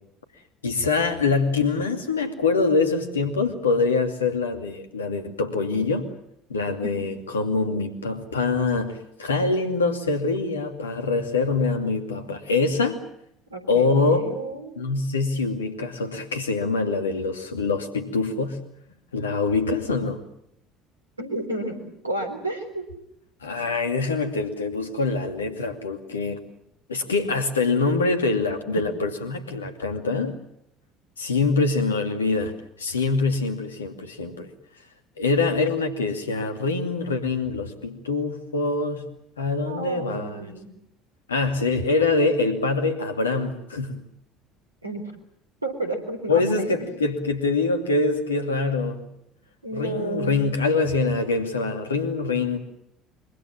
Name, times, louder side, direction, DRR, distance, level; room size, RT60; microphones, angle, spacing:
voice 1, 0.6-6.1 6.5-13.0 13.7-14.2 14.8-18.6 19.1-20.2 23.4-26.4 26.9-30.4 31.2-32.5 32.8-34.5 35.2-39.1 39.4-40.5 41.3-44.0 46.3-49.0 49.7-52.6, left 3 dB, 75° left, 7 dB, 2.5 m, -24 dB
voice 2, 13.5-14.8 21.2-22.9 39.5-40.7 44.8-45.0 45.6-46.8 49.6-50.4, right 1 dB, 85° right, 6 dB, 4.1 m, -31 dB
25.0 x 24.0 x 7.5 m, 0.77 s
figure-of-eight pair, 60°, 0 cm